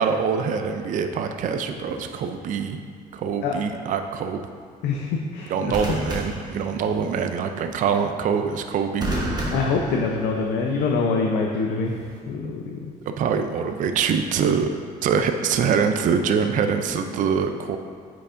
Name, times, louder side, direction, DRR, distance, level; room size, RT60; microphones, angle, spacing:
voice 1, 0.0-2.8 3.1-4.4 5.5-9.1 13.1-14.7 15.0-17.8, right 6 dB, 50° right, 7 dB, 0.4 m, -24 dB
sound 1, 1.8-2.2 5.7-7.2 9.0-10.7 11.9-12.2, right 1 dB, 25° right, 1.1 m, -31 dB
voice 2, 4.8-6.0 9.5-11.9 12.3-12.8, left 4 dB, 85° left, 0 dB, 0.6 m, -25 dB
8.6 x 4.6 x 2.5 m, 2.1 s
cardioid pair, 110°, 17 cm